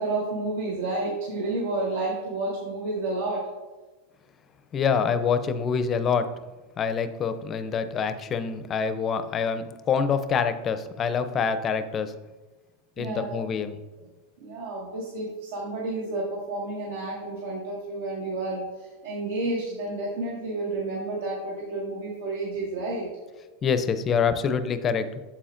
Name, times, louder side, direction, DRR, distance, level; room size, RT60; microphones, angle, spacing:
voice 1, 0.0-3.4 13.0-13.4 14.4-23.1, right 2 dB, 80° right, -5 dB, 1.7 m, -30 dB
voice 2, 4.7-6.3 6.8-12.1 13.0-13.8 23.6-25.1, left 6 dB, 25° left, 10 dB, 0.5 m, -26 dB
8.5 x 7.4 x 2.5 m, 1.2 s
supercardioid pair, 155°, 0 cm